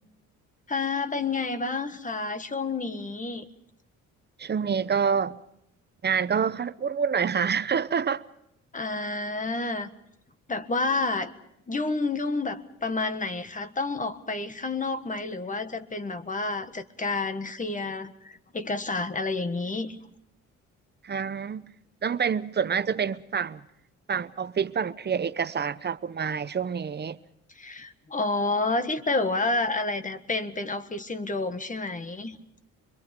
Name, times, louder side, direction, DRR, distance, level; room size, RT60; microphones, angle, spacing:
voice 1, 0.7-3.5 8.7-9.9 10.5-11.3 11.7-20.0 27.5-32.4, left 3 dB, 25° left, 1.5 m, -29 dB
voice 2, 4.4-5.4 6.0-8.2 21.0-21.7 22.0-23.6 24.1-27.2, right 6 dB, 35° right, 0.8 m, -27 dB
25.0 x 22.5 x 5.2 m
cardioid pair, 90°, 30 cm